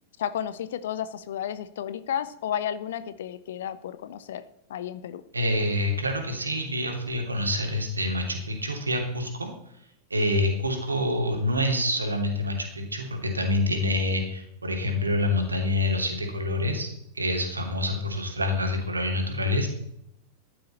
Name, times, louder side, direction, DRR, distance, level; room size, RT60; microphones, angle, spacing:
voice 1, 0.2-4.4 4.7-5.2, left 9 dB, 60° left, 15 dB, 0.9 m, -32 dB
voice 2, 5.3-9.5 10.1-16.9 17.1-19.7, left 1 dB, 80° right, 3 dB, 3.0 m, -27 dB
14.5 x 11.0 x 4.4 m, 0.75 s
figure-of-eight pair, 90°, 0 cm